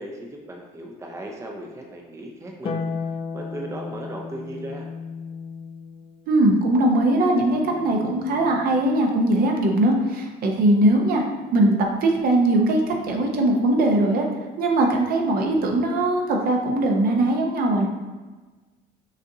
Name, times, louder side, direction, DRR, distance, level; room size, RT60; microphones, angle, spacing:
voice 1, 0.0-2.8 3.3-4.9, right 1 dB, 15° right, 0 dB, 0.5 m, -36 dB
Harp, 2.6-9.2 10.8-11.8, left 5 dB, 30° left, 0.4 m, -36 dB
voice 2, 6.3-11.2 11.5-14.2 14.6-17.9, right 1 dB, 60° right, 1 dB, 0.8 m, -20 dB
6.1 x 2.7 x 2.7 m, 1.3 s
cardioid pair, 110°, 17 cm